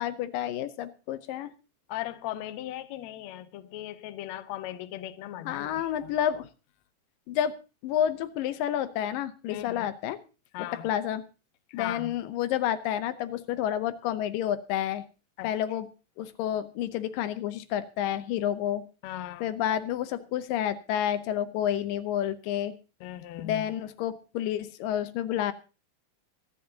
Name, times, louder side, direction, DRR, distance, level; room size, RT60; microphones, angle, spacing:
voice 1, 0.0-1.5 5.5-6.5 7.3-7.5 7.8-10.2 10.6-11.2 11.7-15.0 15.4-15.9 16.2-18.8 19.4-22.8 23.4-25.5, left 10 dB, 90° left, 2.6 m, -30 dB
voice 2, 1.9-6.1 9.5-9.9 10.5-10.9 11.7-12.2 15.4-15.5 19.0-19.5 23.0-23.7, left 13 dB, 70° left, 1.8 m, -38 dB
24.5 x 10.5 x 2.8 m
omnidirectional pair, 3.8 m